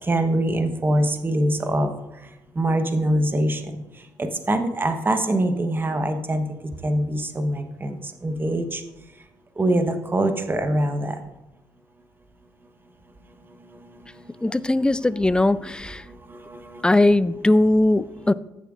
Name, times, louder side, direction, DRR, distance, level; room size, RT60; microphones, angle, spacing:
voice 1, 0.1-1.9 2.6-3.6 4.5-6.4 6.8-7.9 8.2-8.8 9.6-9.9 10.1-11.1, right 1 dB, 25° right, 7 dB, 1.0 m, -23 dB
voice 2, 14.4-16.0 16.8-18.3, left 2 dB, 10° left, 17 dB, 0.4 m, -19 dB
14.0 x 6.9 x 2.5 m, 0.98 s
supercardioid pair, 60°, 9 cm